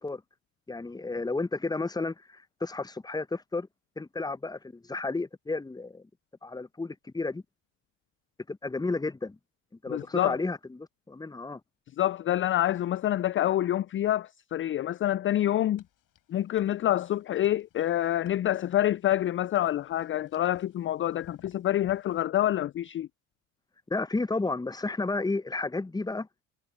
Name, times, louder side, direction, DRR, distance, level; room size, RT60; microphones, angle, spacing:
voice 1, 0.7-3.7 4.0-6.1 6.4-7.4 8.5-9.4 9.8-11.6 23.9-26.3, left 3 dB, 10° left, 1.0 m, -32 dB
voice 2, 9.9-10.4 12.0-15.8 16.3-23.1, left 12 dB, 30° left, 0.5 m, -27 dB
sound 1, 15.8-22.2, left 12 dB, 55° left, 5.3 m, -57 dB
hypercardioid pair, 60°, 40 cm